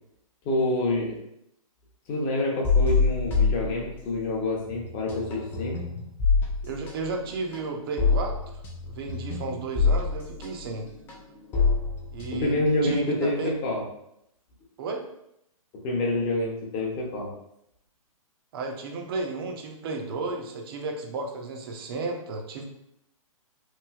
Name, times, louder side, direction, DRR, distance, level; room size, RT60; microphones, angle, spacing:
voice 1, 0.4-1.2 2.1-5.8 12.3-13.8 15.8-17.3, left 1 dB, 25° left, -2 dB, 0.7 m, -27 dB
sound 1, 2.6-4.4 4.7-13.3, left 4 dB, 10° left, 0.3 m, -26 dB
voice 2, 6.6-10.9 12.1-13.5 14.8-15.0 18.5-22.7, right 3 dB, 40° right, 2 dB, 0.6 m, -33 dB
3.1 x 2.6 x 2.3 m, 0.78 s
hypercardioid pair, 140°, 18 cm